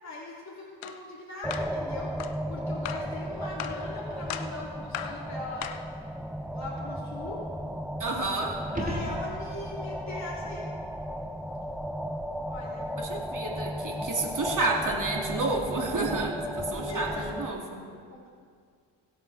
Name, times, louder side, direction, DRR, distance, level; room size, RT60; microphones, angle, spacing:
voice 1, 0.0-5.7 6.5-7.5 8.7-10.7 12.5-12.9 16.7-17.3 18.1-18.3, left 2 dB, 35° left, -6 dB, 3.2 m, -40 dB
sound 1, 0.8-1.0 1.5-1.7 2.2-2.4 2.8-3.1 3.6-3.8 4.3-4.6 4.9-5.2 5.6-5.9, left 10 dB, 80° left, 0.8 m, -37 dB
sound 2, 1.4-17.5, equal, ahead, 0.7 m, -35 dB
voice 2, 8.0-8.6 13.0-17.8, right 2 dB, 40° right, 0 dB, 2.6 m, -30 dB
sound 3, 8.6-9.9 14.7-14.8, equal, 15° right, 2.1 m, -35 dB
20.5 x 8.3 x 3.5 m, 2.1 s
supercardioid pair, 45°, 47 cm